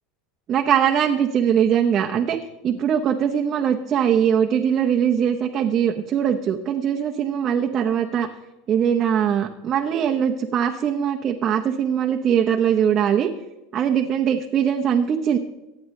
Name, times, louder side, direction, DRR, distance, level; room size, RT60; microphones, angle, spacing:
voice 1, 0.5-2.4 2.6-8.3 8.7-13.3 13.7-15.4, right 8 dB, 25° right, 2 dB, 0.9 m, -21 dB
24.5 x 9.5 x 3.2 m, 1.0 s
supercardioid pair, 165°, 0 cm